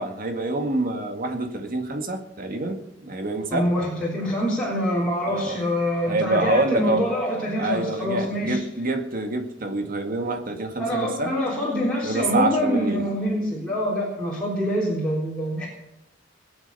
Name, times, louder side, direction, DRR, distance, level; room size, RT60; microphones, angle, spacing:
voice 1, 0.0-3.7 5.3-5.6 6.1-7.1 7.6-11.3 12.0-13.0, right 2 dB, 50° right, 5 dB, 2.0 m, -26 dB
voice 2, 3.5-8.6 10.8-15.7, equal, 5° left, -5 dB, 3.6 m, -25 dB
20.5 x 9.0 x 6.9 m, 0.86 s
head